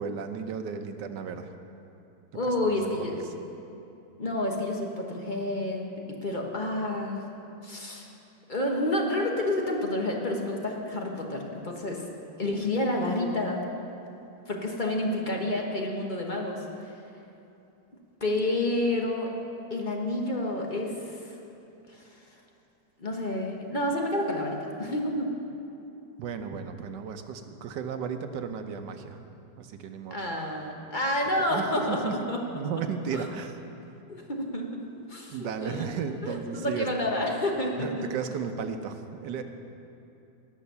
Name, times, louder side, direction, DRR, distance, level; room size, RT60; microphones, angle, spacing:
voice 1, 0.0-1.5 3.0-3.2 26.2-29.2 29.6-30.2 31.5-32.3 32.5-33.6 35.3-36.9 37.8-39.4, right 6 dB, 70° right, 7 dB, 1.3 m, -34 dB
voice 2, 2.3-3.1 4.2-5.8 6.1-7.3 7.6-8.1 8.5-12.1 12.4-13.7 14.5-17.0 18.2-19.3 19.7-21.4 21.9-22.2 23.0-25.3 30.1-32.4 33.1-33.3 34.1-34.8 35.1-35.9 36.2-38.0, left 1 dB, 30° left, 0 dB, 1.1 m, -29 dB
18.0 x 6.3 x 6.9 m, 2.8 s
omnidirectional pair, 2.1 m